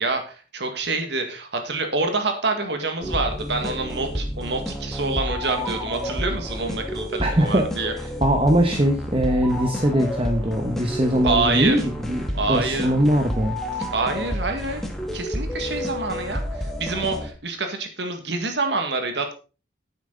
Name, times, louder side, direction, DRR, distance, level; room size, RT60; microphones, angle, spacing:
voice 1, 0.0-7.9 11.2-11.8 12.3-12.9 13.9-19.3, right 3 dB, 70° right, 5 dB, 1.8 m, -26 dB
sound 1, 3.0-17.3, equal, ahead, 1.7 m, -30 dB
voice 2, 7.2-13.6, equal, 30° right, 5 dB, 1.1 m, -21 dB
10.5 x 8.6 x 3.9 m, 0.34 s
head